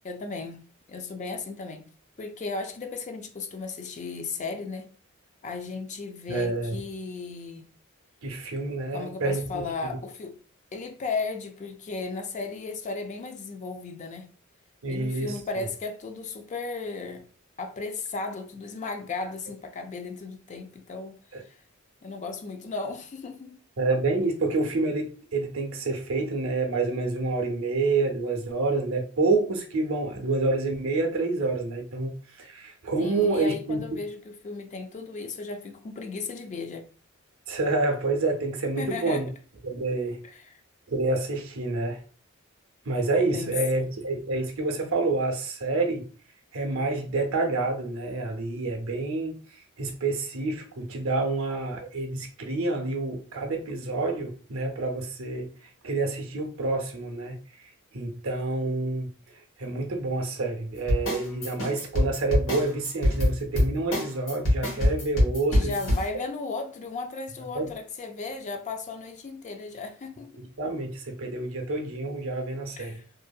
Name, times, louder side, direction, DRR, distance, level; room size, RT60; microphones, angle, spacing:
voice 1, 0.0-1.9 2.2-4.9 5.4-7.7 8.9-10.4 10.7-14.3 14.9-17.3 17.6-21.2 21.4-21.6 22.0-23.6 33.0-36.9 38.8-39.3 40.2-40.6 43.3-43.6 65.5-70.4 72.8-73.0, left 3 dB, 35° left, 0.4 m, -35 dB
voice 2, 6.3-6.8 8.2-10.0 14.8-15.3 21.3-21.4 23.8-33.8 37.5-39.3 39.6-40.2 40.9-42.0 42.9-46.0 46.5-49.4 49.8-55.5 55.8-57.4 57.9-59.1 59.6-65.8 67.5-67.7 70.4-73.0, right 3 dB, 70° right, 0.6 m, -28 dB
sound 1, 60.9-66.0, left 1 dB, 70° left, 1.1 m, -24 dB
2.6 x 2.6 x 2.3 m
head